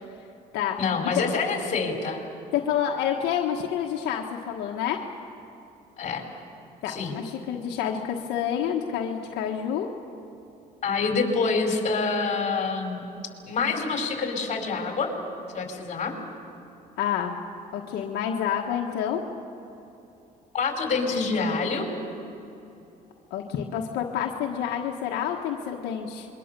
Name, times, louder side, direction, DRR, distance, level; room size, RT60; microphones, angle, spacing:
voice 1, 0.8-2.2 6.0-6.2 6.9-7.2 10.8-13.0 13.5-15.1 15.5-16.1 20.5-21.9, left 4 dB, 45° left, 3 dB, 4.9 m, -26 dB
voice 2, 2.5-5.0 6.8-9.9 17.0-17.4 17.7-19.2 23.3-26.3, left 9 dB, 85° left, 1 dB, 1.5 m, -28 dB
26.5 x 23.0 x 6.9 m, 2.9 s
cardioid pair, 110°, 17 cm